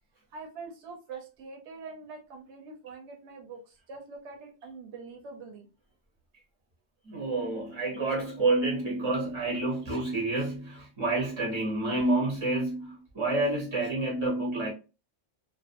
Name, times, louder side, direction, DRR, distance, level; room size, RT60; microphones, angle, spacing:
voice 1, 0.3-5.7, right 4 dB, 70° right, 1.0 m, -44 dB
voice 2, 7.0-14.7, right 2 dB, 25° right, 0.7 m, -29 dB
2.5 x 2.3 x 2.5 m
omnidirectional pair, 1.3 m